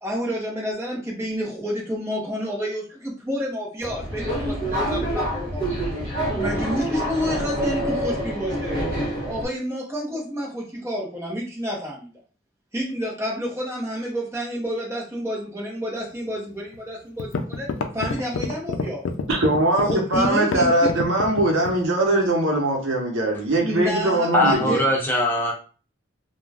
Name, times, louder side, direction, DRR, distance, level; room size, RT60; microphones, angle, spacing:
voice 1, 0.0-5.9 6.4-8.9 9.2-12.1 12.7-17.7 17.9-19.1 19.8-20.9 23.6-24.8, equal, 15° right, -4 dB, 0.8 m, -29 dB
Subway metro underground, 3.8-9.5, right 1 dB, 45° right, 1.0 m, -26 dB
sound 1, 16.7-16.8 17.2-21.8, left 4 dB, 90° left, 0.4 m, -27 dB
voice 2, 19.3-24.8, right 1 dB, 75° right, 0 dB, 0.8 m, -21 dB
voice 3, 24.3-25.5, left 1 dB, 10° left, -2 dB, 0.4 m, -21 dB
2.3 x 2.2 x 3.3 m, 0.37 s
head